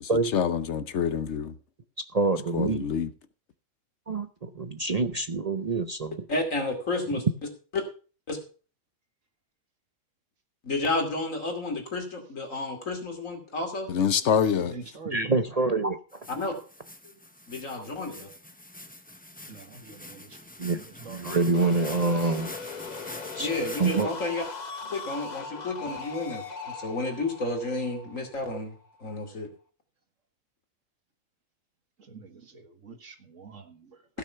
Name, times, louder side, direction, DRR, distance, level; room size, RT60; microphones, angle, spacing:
voice 1, 0.0-1.5 2.5-3.1 13.9-14.8, left 7 dB, 65° left, 1.0 m, -26 dB
voice 2, 2.1-2.8 4.1-6.2 15.1-16.0 20.6-20.8 21.1-22.5 23.4-23.5 23.8-24.1, right 3 dB, 40° right, 0.7 m, -26 dB
voice 3, 6.3-7.2 7.7-7.8 8.3-8.4 10.6-13.9 16.3-16.5 17.5-18.3 23.4-24.4 24.9-29.5, left 2 dB, 80° left, 3.1 m, -31 dB
voice 4, 14.6-15.3 17.0-17.2 19.5-20.4 20.7-21.2 32.0-34.0, right 4 dB, 70° right, 2.1 m, -44 dB
sound 1, 16.1-24.0, left 1 dB, 10° left, 0.8 m, -45 dB
sound 2, 21.3-29.0, left 4 dB, 35° left, 1.0 m, -39 dB
15.5 x 6.4 x 5.7 m
omnidirectional pair, 1.3 m